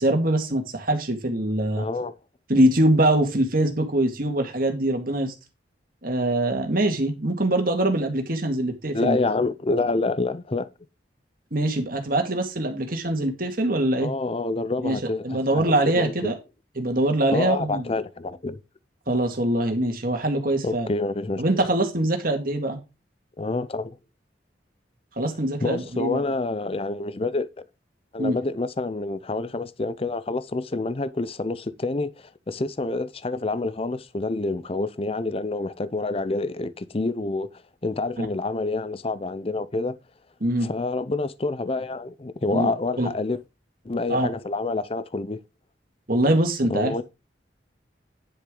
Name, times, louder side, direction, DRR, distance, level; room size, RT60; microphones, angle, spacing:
voice 1, 0.0-1.8 2.5-5.3 6.0-9.2 11.5-14.1 14.8-15.0 15.2-16.3 16.8-17.8 19.1-20.9 21.4-22.8 25.2-26.2 28.2-28.4 38.2-38.3 40.4-40.7 42.5-42.7 43.0-43.1 44.1-44.3 46.1-46.9, right 1 dB, 50° right, 2.1 m, -23 dB
voice 2, 1.8-2.2 8.9-10.7 14.0-16.4 17.3-18.6 20.6-21.7 23.4-24.0 25.6-27.5 28.1-37.5 37.8-39.9 40.6-43.4 43.8-45.4 46.7-47.0, left 3 dB, 30° left, 0.6 m, -27 dB
10.5 x 6.5 x 3.8 m
head